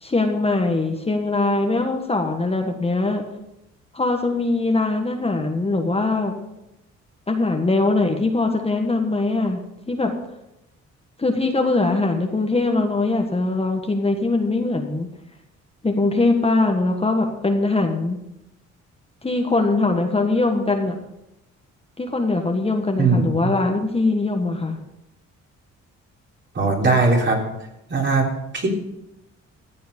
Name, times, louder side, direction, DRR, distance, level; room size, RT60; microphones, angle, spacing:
voice 1, 0.0-3.2 3.9-6.4 7.3-9.6 9.9-10.1 11.2-15.1 15.8-18.2 19.2-21.0 22.0-24.8, left 2 dB, 20° left, 3 dB, 1.5 m, -21 dB
voice 2, 23.0-23.5 26.5-27.4 27.9-28.7, right 3 dB, 40° right, 0 dB, 3.3 m, -20 dB
14.5 x 7.7 x 5.3 m, 0.87 s
cardioid pair, 90°, 30 cm